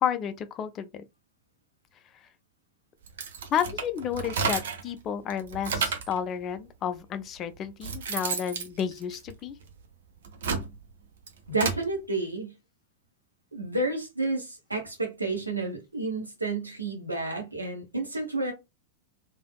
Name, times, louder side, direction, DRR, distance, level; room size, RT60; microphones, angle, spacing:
voice 1, 0.0-1.0 3.5-9.6, left 8 dB, 30° left, 0.4 m, -31 dB
sound 1, 3.0-4.9 5.3-6.2 7.0-7.1 7.6-9.7 10.2-11.8, right 5 dB, 60° right, 0.7 m, -32 dB
voice 2, 11.5-12.5 13.5-18.5, right 2 dB, 80° right, 1.0 m, -30 dB
3.3 x 2.6 x 2.2 m
figure-of-eight pair, 90°, 0 cm